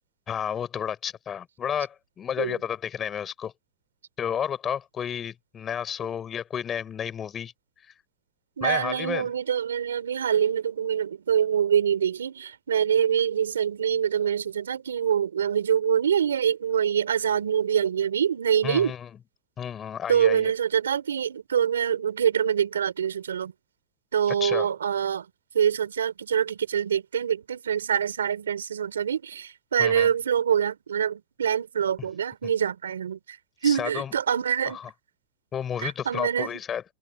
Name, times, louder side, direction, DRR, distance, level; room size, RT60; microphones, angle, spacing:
voice 1, 0.3-3.5 4.2-7.5 8.6-9.3 18.6-19.1 19.6-20.5 24.4-24.7 29.8-30.1 32.4-32.5 33.6-34.1 34.7-34.9 35.5-36.8, left 8 dB, 30° left, 5.5 m, -31 dB
voice 2, 8.6-18.9 20.1-23.5 24.1-25.2 25.5-33.2 33.6-34.8 35.8-36.6, right 8 dB, 90° right, 4.7 m, -25 dB
hypercardioid pair, 100°, 0 cm